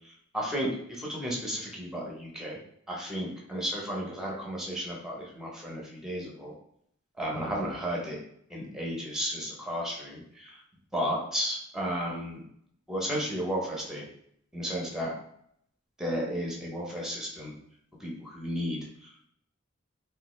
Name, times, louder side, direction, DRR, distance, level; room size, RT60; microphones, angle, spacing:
voice 1, 0.3-2.6 2.9-6.5 7.2-8.2 8.5-10.6 10.9-12.4 12.9-14.0 14.5-15.1 16.0-17.5 18.0-18.8, equal, 5° right, -3 dB, 0.6 m, -33 dB
3.1 x 2.3 x 3.0 m, 0.70 s
head